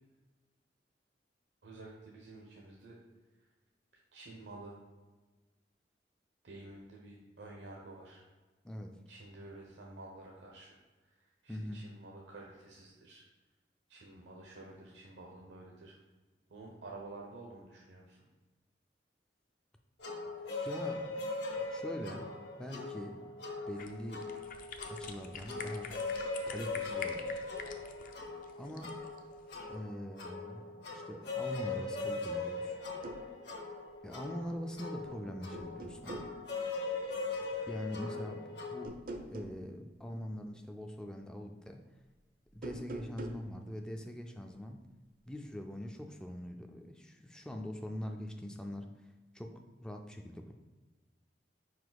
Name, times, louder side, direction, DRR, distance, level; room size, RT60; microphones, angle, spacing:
voice 1, 1.6-3.0 4.1-4.8 6.4-8.2 9.1-13.2 13.9-15.9 16.5-18.3 38.0-38.3, right 2 dB, 75° right, -2 dB, 0.8 m, -50 dB
voice 2, 8.6-9.0 11.5-11.9 20.5-21.2 21.6-23.2 23.7-24.3 24.9-25.9 26.5-27.5 28.6-29.0 29.7-32.8 34.0-36.3 37.7-39.0 39.3-41.8 42.5-44.8 45.3-50.5, equal, 5° left, 3 dB, 0.4 m, -43 dB
sound 1, 20.0-38.9, left 3 dB, 70° left, 1.2 m, -40 dB
sound 2, 23.8-29.8, left 5 dB, 50° left, 0.6 m, -48 dB
sound 3, 32.8-33.3 34.8-35.2 35.5-36.4 38.8-39.6 42.5-43.5, right 2 dB, 55° right, 0.6 m, -44 dB
4.9 x 4.8 x 4.0 m, 1.3 s
head